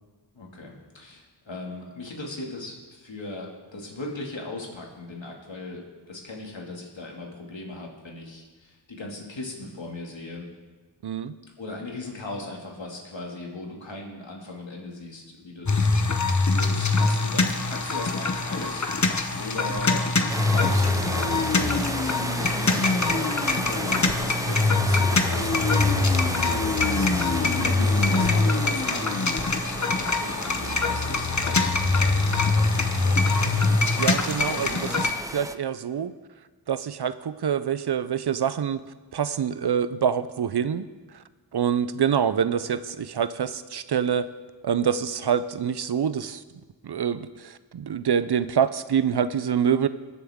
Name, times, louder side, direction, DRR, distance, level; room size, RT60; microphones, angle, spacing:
voice 1, 0.3-10.5 11.6-18.9 19.4-20.0 20.5-29.3 29.8-32.7 33.0-33.8, left 2 dB, 70° left, -1 dB, 2.3 m, -38 dB
voice 2, 11.0-11.3 30.5-30.8 34.0-36.1 36.7-40.9 41.1-41.2 41.5-44.3 44.6-46.4 46.8-49.9, right 8 dB, 60° right, 14 dB, 0.5 m, -26 dB
sound 1, 15.7-35.1, left 3 dB, 40° left, 0.9 m, -23 dB
sound 2, 20.3-35.6, right 1 dB, 10° right, 0.3 m, -34 dB
21.0 x 7.2 x 3.6 m, 1.3 s
wide cardioid pair, 60°, 46 cm